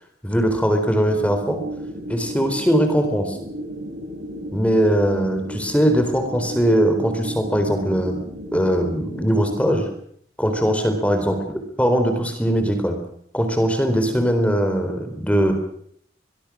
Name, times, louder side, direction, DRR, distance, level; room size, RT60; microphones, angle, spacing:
voice 1, 0.2-1.6 2.1-3.4 4.5-8.2 8.5-9.9 10.4-12.9 13.3-15.5, equal, 5° left, 6 dB, 4.1 m, -20 dB
sound 1, 1.0-9.9, right 1 dB, 75° right, 3.5 m, -34 dB
24.0 x 21.5 x 6.4 m, 0.65 s
head